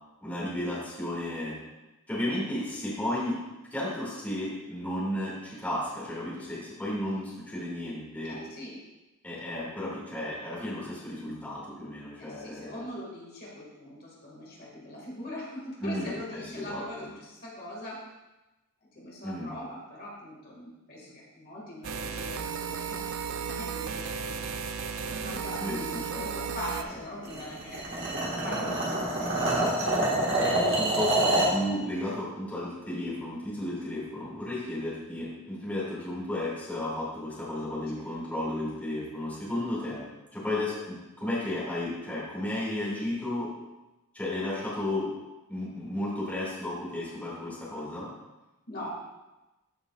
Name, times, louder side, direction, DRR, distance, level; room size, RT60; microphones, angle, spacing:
voice 1, 0.2-1.5 2.1-3.4 3.7-8.4 9.2-12.8 15.8-16.8 19.2-19.5 25.6-26.3 26.9-27.0 30.4-43.5 44.1-45.1 45.5-48.1, left 1 dB, 5° left, -7 dB, 2.1 m, -33 dB
voice 2, 8.3-8.7 12.2-18.0 18.9-24.6 25.0-29.5 38.0-38.1 48.7-49.1, left 1 dB, 45° left, -4 dB, 2.0 m, -42 dB
sound 1, 21.8-26.8, right 6 dB, 75° right, 0.5 m, -34 dB
sound 2, 27.2-31.6, right 1 dB, 55° right, 1.6 m, -26 dB
13.5 x 5.2 x 2.4 m, 1.0 s
head